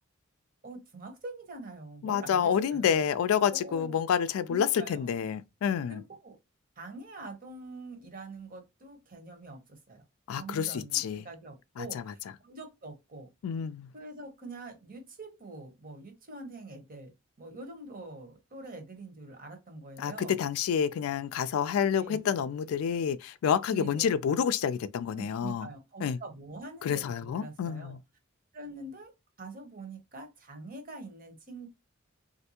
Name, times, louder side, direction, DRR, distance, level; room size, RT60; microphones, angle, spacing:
voice 1, 0.6-3.1 3.5-3.9 4.5-5.1 5.9-6.4 6.8-10.0 10.3-13.3 13.9-17.1 17.4-20.4 21.9-22.3 23.7-24.0 25.1-28.0 28.5-29.1 29.4-31.7, right 2 dB, 40° right, 0.9 m, -45 dB
voice 2, 2.0-6.0 10.3-11.3 11.8-12.0 13.4-13.9 20.0-25.7 26.0-26.2 26.8-28.0, left 8 dB, 80° left, 0.3 m, -28 dB
3.3 x 2.6 x 2.8 m
head